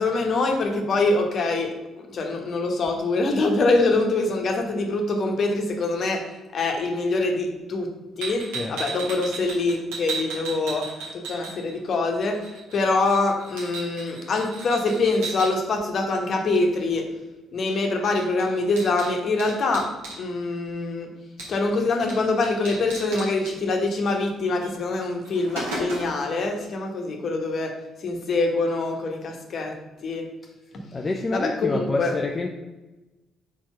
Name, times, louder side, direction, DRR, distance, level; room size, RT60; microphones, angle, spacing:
voice 1, 0.0-1.8 2.1-6.3 6.5-7.9 8.2-12.4 12.7-17.1 17.5-19.9 20.2-21.1 21.5-27.7 28.0-29.7 30.0-30.2 31.3-32.1, left 3 dB, 50° left, 3 dB, 1.2 m, -24 dB
sound 1, 8.2-11.9 12.2-15.5 17.7-17.8 18.0-20.2 21.4-21.8 22.1-22.2 22.4-23.5 24.6-24.7 25.1-26.3, right 3 dB, 70° right, 1.7 m, -35 dB
voice 2, 30.9-32.5, left 3 dB, 30° left, 3 dB, 0.6 m, -27 dB
4.7 x 4.5 x 5.6 m, 1.1 s
figure-of-eight pair, 45°, 0 cm